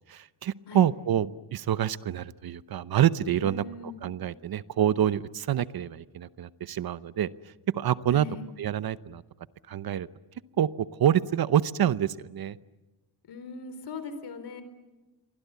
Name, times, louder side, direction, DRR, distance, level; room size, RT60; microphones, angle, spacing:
voice 1, 0.1-3.6 4.0-7.3 7.7-8.3 8.6-9.2 9.7-10.1 10.6-10.7 11.0-12.6, right 10 dB, 60° right, 16 dB, 0.8 m, -26 dB
voice 2, 3.4-4.0 8.1-8.4 13.3-14.6, left 4 dB, 70° left, 11 dB, 4.1 m, -40 dB
29.0 x 23.5 x 8.3 m, 1.1 s
cardioid pair, 110°, 42 cm